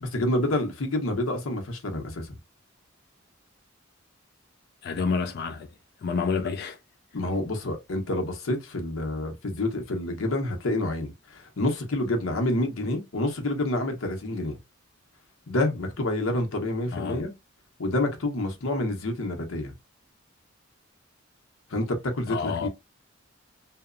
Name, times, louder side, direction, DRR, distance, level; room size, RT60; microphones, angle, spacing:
voice 1, 0.0-2.3 7.1-14.6 15.5-17.3 17.8-19.7 21.7-22.7, left 1 dB, 85° left, 0.8 m, -28 dB
voice 2, 4.8-5.7 6.0-6.8 16.9-17.2 22.3-22.7, left 5 dB, 55° left, 0.3 m, -29 dB
2.8 x 2.0 x 2.4 m
head